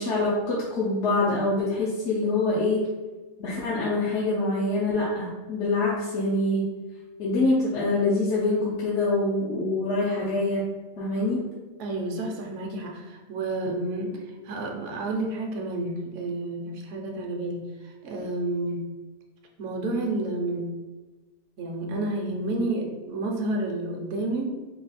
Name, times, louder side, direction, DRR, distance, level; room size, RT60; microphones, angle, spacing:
voice 1, 0.0-2.8 3.4-6.7 7.2-10.6 11.0-11.5, left 2 dB, 60° left, -6 dB, 1.0 m, -25 dB
voice 2, 11.8-14.1 14.4-17.6 18.0-18.9 19.6-20.7 21.6-24.5, right 2 dB, 65° right, 1 dB, 1.0 m, -30 dB
3.8 x 2.3 x 4.2 m, 1.2 s
omnidirectional pair, 1.5 m